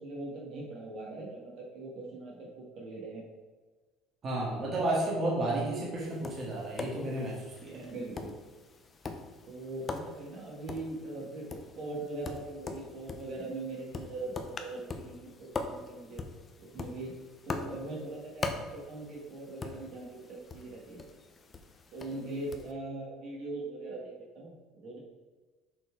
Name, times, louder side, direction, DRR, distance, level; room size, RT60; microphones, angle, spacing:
voice 1, 0.0-3.2 4.6-4.9 7.7-8.3 9.5-16.2 16.6-17.1 17.4-21.0 21.9-25.0, right 2 dB, 50° right, -2 dB, 1.7 m, -41 dB
voice 2, 4.2-7.4 7.6-7.9, right 1 dB, 30° right, -4 dB, 1.6 m, -32 dB
Tap, 6.0-22.7, left 3 dB, 20° left, 0.6 m, -43 dB
6.3 x 4.5 x 4.5 m, 1.3 s
cardioid pair, 155°, 0 cm